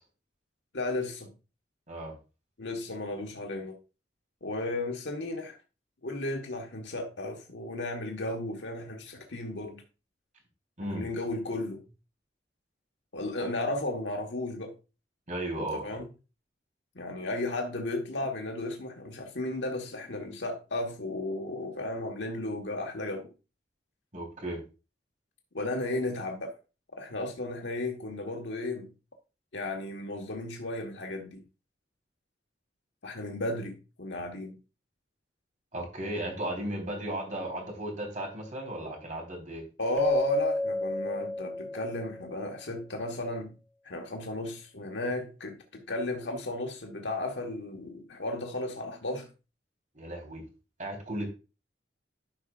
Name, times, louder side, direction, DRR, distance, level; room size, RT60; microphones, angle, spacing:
voice 1, 0.7-1.3 2.6-3.8 4.4-5.6 6.0-9.8 10.8-11.8 13.1-14.7 15.7-16.1 16.9-23.3 25.5-26.6 26.9-28.9 29.5-31.4 33.0-34.6 39.8-43.5 43.8-49.3, left 2 dB, 80° left, 1.4 m, -34 dB
voice 2, 15.3-16.0 24.1-24.6 35.7-39.6 49.9-50.4 50.8-51.2, right 1 dB, 45° right, 3.8 m, -35 dB
Keyboard (musical), 40.0-42.4, left 1 dB, 10° left, 0.7 m, -30 dB
12.5 x 6.0 x 2.5 m
head